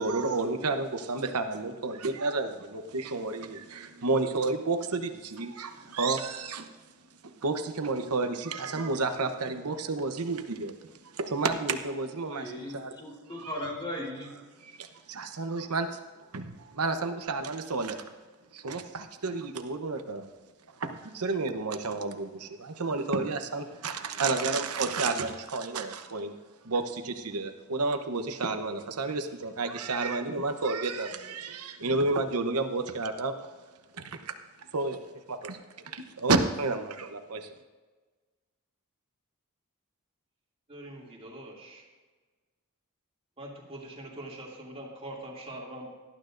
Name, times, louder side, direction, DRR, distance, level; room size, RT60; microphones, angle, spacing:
voice 1, 0.0-6.7 7.2-13.0 13.4-13.7 14.6-16.0 16.3-18.0 18.5-20.3 20.8-26.3 26.6-33.5 34.0-34.3 34.7-35.0 35.3-35.6 35.8-37.5, right 3 dB, 85° right, 7 dB, 0.9 m, -31 dB
voice 2, 12.2-14.4, left 1 dB, 20° left, -2 dB, 3.6 m, -37 dB
voice 3, 40.7-41.8 43.4-45.9, right 1 dB, 25° right, -3 dB, 2.6 m, -43 dB
18.0 x 12.0 x 2.6 m, 1.4 s
head